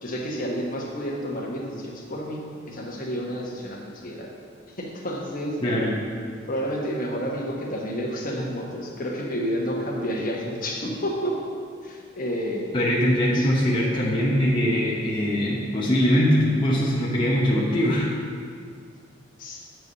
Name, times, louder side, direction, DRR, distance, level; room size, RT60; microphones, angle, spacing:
voice 1, 0.0-4.3 4.8-5.6 6.5-11.5 11.8-12.7 13.3-13.5 19.4-19.6, equal, 45° left, -1 dB, 1.3 m, -30 dB
voice 2, 5.6-5.9 12.7-18.1, equal, 25° left, -6 dB, 1.0 m, -22 dB
8.3 x 4.7 x 6.7 m, 2.2 s
head